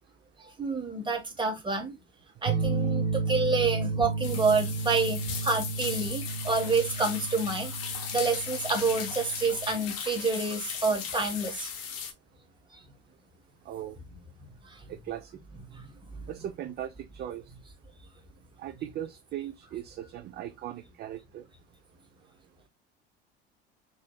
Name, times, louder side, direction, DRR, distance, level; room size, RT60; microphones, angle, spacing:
voice 1, 0.4-2.0 2.4-7.7 8.1-11.7 12.7-12.8 14.6-14.9 15.7-16.3, right 3 dB, 15° right, 1.3 m, -28 dB
sound 1, 2.5-9.7, right 4 dB, 70° right, 0.9 m, -32 dB
sound 2, 4.2-12.1, left 7 dB, 50° left, 0.9 m, -37 dB
voice 2, 13.7-14.0 14.9-15.3 16.3-16.9 17.2-17.4 18.6-21.5, right 11 dB, 30° right, 0.5 m, -38 dB
4.7 x 2.7 x 2.3 m
figure-of-eight pair, 65°, 32 cm